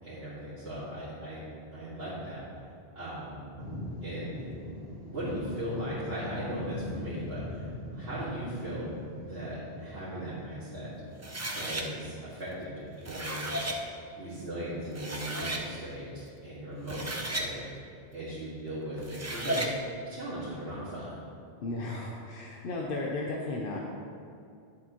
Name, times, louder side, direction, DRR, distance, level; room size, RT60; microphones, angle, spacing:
voice 1, 0.0-2.4 3.0-3.4 4.0-4.5 5.1-7.7 7.9-10.9 11.5-13.5 14.1-17.6 18.1-19.7 20.1-21.1, right 1 dB, 70° right, -12 dB, 2.2 m, -38 dB
sound 1, 3.6-13.6, left 1 dB, 85° right, 2.1 m, -42 dB
sound 2, 11.2-11.9 12.9-13.8 14.6-14.7 15.0-15.7 16.7-17.5 19.0-19.7, right 1 dB, 20° right, 0.5 m, -34 dB
voice 2, 21.6-23.8, left 2 dB, 60° left, -1 dB, 0.9 m, -34 dB
11.0 x 7.5 x 3.0 m, 2.4 s
omnidirectional pair, 1.1 m